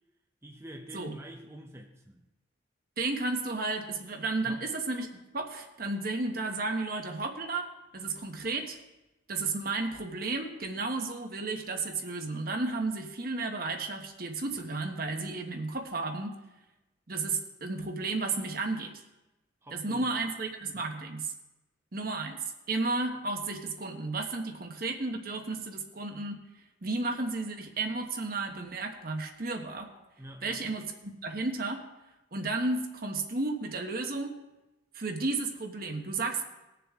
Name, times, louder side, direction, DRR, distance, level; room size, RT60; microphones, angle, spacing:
voice 1, 0.4-2.2 4.4-4.6 19.6-20.1 20.7-20.9 30.2-30.7, equal, 15° right, 1 dB, 0.8 m, -47 dB
voice 2, 3.0-5.1 5.3-7.7 7.9-8.8 9.3-16.3 17.1-18.9 19.7-21.3 21.9-26.4 26.8-29.9 30.4-31.8 32.3-34.3 34.9-36.4, right 3 dB, 50° right, 4 dB, 1.2 m, -33 dB
20.0 x 7.0 x 3.6 m, 1.0 s
head